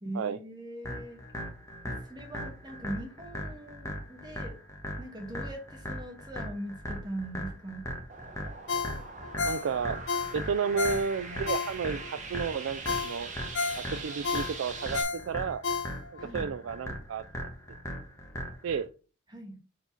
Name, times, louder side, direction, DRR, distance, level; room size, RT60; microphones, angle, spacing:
voice 1, 0.0-1.2 1.8-4.6 5.0-7.9 16.2-16.5 19.3-19.6, right 1 dB, 20° right, 3 dB, 1.3 m, -41 dB
sound 1, 0.8-18.8, equal, 15° left, 1.2 m, -39 dB
sound 2, 8.1-15.0, right 4 dB, 40° right, 1.0 m, -43 dB
Ringtone, 8.7-12.1 12.5-12.6 12.9-16.3 16.7-16.8, left 5 dB, 70° left, 0.7 m, -33 dB
voice 2, 9.4-10.0 10.3-13.3 13.8-15.6 16.3-17.5 18.6-18.9, right 6 dB, 90° right, 11 dB, 0.4 m, -32 dB
4.7 x 3.8 x 5.7 m, 0.36 s
head